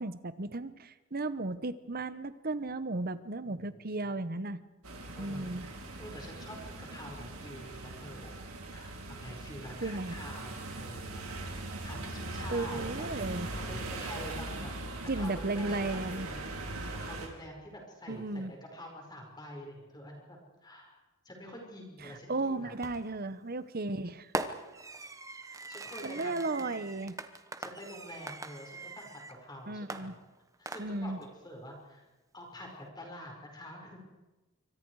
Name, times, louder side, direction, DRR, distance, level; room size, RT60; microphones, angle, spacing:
voice 1, 0.0-4.6 5.2-5.7 9.8-10.1 12.5-13.5 15.1-16.3 18.1-18.5 22.0-24.3 26.0-27.2 29.7-30.1 30.8-31.2, right 2 dB, 40° right, 14 dB, 1.0 m, -35 dB
voice 2, 3.4-4.3 5.2-5.7 6.0-8.3 8.7-11.2 11.8-14.7 15.1-16.4 16.9-21.0 21.3-22.7 25.5-26.8 27.6-30.2 30.6-32.1 32.3-32.7 33.0-34.0, equal, 20° left, 1 dB, 5.3 m, -47 dB
sound 1, 4.8-17.3, right 2 dB, 75° right, 4.3 m, -40 dB
Fireworks, 22.8-23.2 24.3-29.4 29.9-31.2, right 2 dB, 15° right, 1.0 m, -41 dB
27.5 x 25.0 x 4.8 m, 1.1 s
head